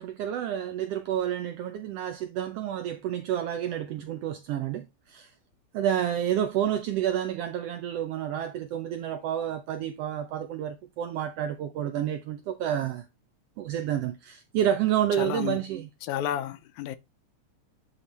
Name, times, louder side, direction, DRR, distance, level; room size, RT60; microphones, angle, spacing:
voice 1, 0.0-5.3 5.7-13.0 13.6-15.9, right 10 dB, 80° right, 1.4 m, -29 dB
voice 2, 15.1-15.6 16.0-17.0, left 11 dB, 85° left, 2.1 m, -31 dB
9.8 x 3.3 x 4.2 m
omnidirectional pair, 3.4 m